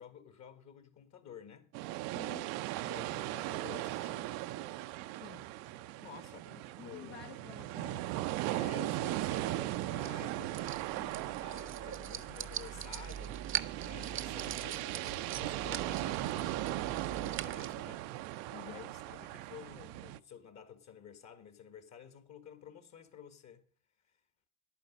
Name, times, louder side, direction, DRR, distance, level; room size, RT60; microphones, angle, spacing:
voice 1, 0.0-1.7 2.8-4.4 5.9-7.2 8.5-13.4 13.8-18.1 18.6-23.7, left 8 dB, 45° left, 1.7 m, -52 dB
sound 1, 1.7-20.2, right 16 dB, 70° right, 0.7 m, -38 dB
voice 2, 2.1-2.5 5.2-5.5 6.4-8.1 18.5-18.9, left 10 dB, 75° left, 1.5 m, -51 dB
sound 2, 9.0-17.7, right 9 dB, 35° right, 0.8 m, -43 dB
11.0 x 9.3 x 5.3 m
supercardioid pair, 105°, 38 cm